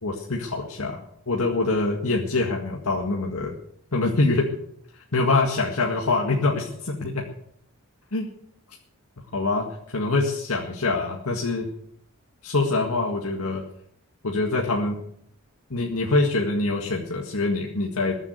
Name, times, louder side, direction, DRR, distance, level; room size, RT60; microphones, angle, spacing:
voice 1, 0.0-1.0 1.3-3.5 3.9-4.5 4.9-7.2 8.1-8.3 8.7-8.8 9.3-11.7 12.4-13.6 14.2-15.0 15.7-18.2, left 3 dB, 80° left, 0 dB, 1.9 m, -24 dB
21.5 x 7.4 x 7.9 m, 0.71 s
head